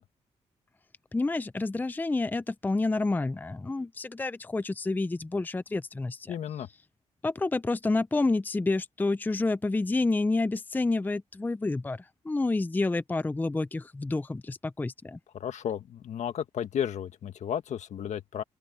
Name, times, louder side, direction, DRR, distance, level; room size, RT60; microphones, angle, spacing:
voice 1, 1.1-6.4 7.2-15.2, left 3 dB, 15° left, 0.5 m, -29 dB
voice 2, 6.3-6.7 15.3-18.4, left 9 dB, 75° left, 1.6 m, -33 dB
open air
cardioid pair, 100°, 12 cm